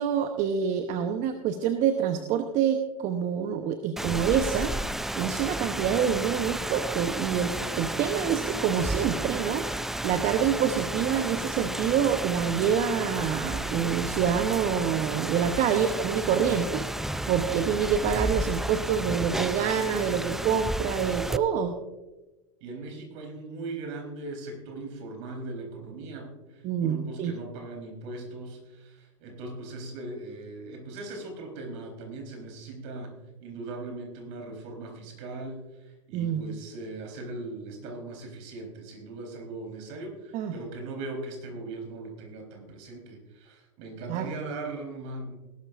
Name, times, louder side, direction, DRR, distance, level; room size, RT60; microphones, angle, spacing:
voice 1, 0.0-4.7 5.1-9.7 10.0-16.9 17.2-21.8 26.6-27.3 36.1-36.4 40.3-40.5 44.1-44.3, right 8 dB, 45° right, 7 dB, 1.0 m, -26 dB
Rain, 4.0-21.4, right 1 dB, ahead, 0.3 m, -32 dB
voice 2, 22.6-45.4, right 2 dB, 60° right, 2 dB, 4.2 m, -39 dB
18.5 x 12.0 x 2.6 m, 1.1 s
hypercardioid pair, 105°, 18 cm